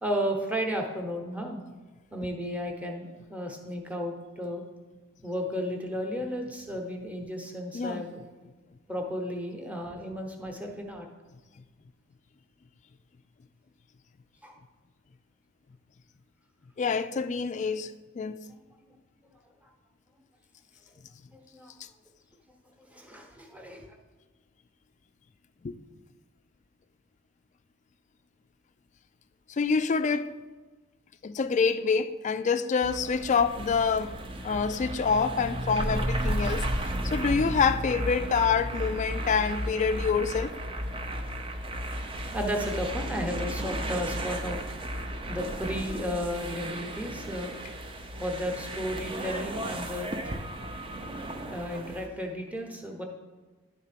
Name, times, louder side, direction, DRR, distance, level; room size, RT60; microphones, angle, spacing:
voice 1, 0.0-1.6 2.1-4.6 5.2-8.2 8.9-11.1 14.4-14.5 18.4-18.6 18.9-19.0 19.2-19.3 19.6-19.7 21.3-21.7 22.5-24.0 41.9-47.6 48.2-50.3 51.4-53.0, equal, 5° right, 1.0 m, -34 dB
voice 2, 16.8-18.4 25.6-25.8 29.5-30.3 31.2-34.2 34.4-40.6, left 5 dB, 35° left, 0.3 m, -27 dB
sound 1, 32.8-52.1, right 1 dB, 25° right, 0.6 m, -34 dB
11.0 x 3.7 x 5.8 m
head